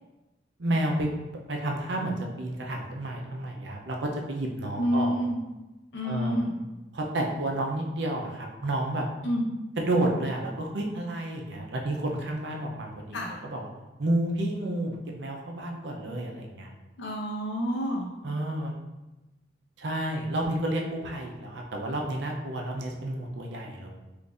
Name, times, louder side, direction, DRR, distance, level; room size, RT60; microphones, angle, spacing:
voice 1, 0.6-1.1 1.5-5.2 6.0-6.4 6.9-9.1 9.8-13.2 13.4-13.7 14.0-16.7 18.2-18.7 19.8-24.0, right 1 dB, 70° right, 0 dB, 0.5 m, -30 dB
voice 2, 4.8-5.4 5.9-6.5 9.2-9.5 13.1-13.3 17.0-18.1, equal, 80° left, -1 dB, 0.7 m, -28 dB
3.8 x 2.6 x 2.4 m, 1.1 s
head